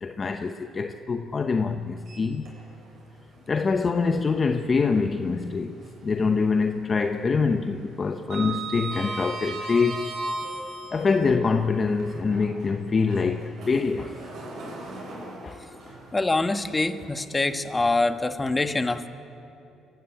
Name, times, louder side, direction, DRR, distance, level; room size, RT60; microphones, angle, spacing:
voice 1, 0.0-2.5 3.5-5.8 6.0-10.1 10.9-14.1 15.4-15.6 15.9-16.0, left 4 dB, 40° left, 7 dB, 0.9 m, -25 dB
Sliding door, 2.0-3.0 3.3-3.5 5.2-6.2 6.5-6.9 7.1-11.2 11.9-17.1, right 2 dB, 65° right, 7.4 m, -37 dB
voice 2, 16.1-19.1, left 2 dB, 20° left, 9 dB, 1.4 m, -25 dB
24.0 x 15.5 x 9.1 m, 2.9 s
supercardioid pair, 60°, 0 cm